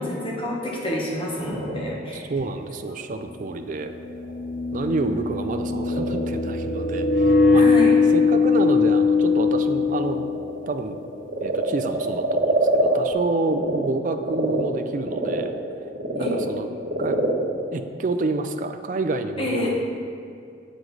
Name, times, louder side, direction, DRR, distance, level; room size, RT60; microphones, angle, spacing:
voice 1, 0.0-2.2 4.8-4.9 7.5-8.0 16.1-16.3 19.4-19.7, left 1 dB, 30° left, -3 dB, 1.2 m, -28 dB
Frog, 0.9-13.8 14.1-18.8, right 1 dB, 90° right, 1.3 m, -28 dB
voice 2, 2.1-3.9 4.7-7.6 8.1-10.3 10.7-11.0 11.4-15.5 16.2-16.7 17.0-17.2 17.7-19.8, right 3 dB, 45° right, 8 dB, 0.3 m, -28 dB
sound 1, 2.4-2.5 4.0-10.8, left 4 dB, 45° left, 0.3 m, -21 dB
7.4 x 5.0 x 3.9 m, 2.4 s
head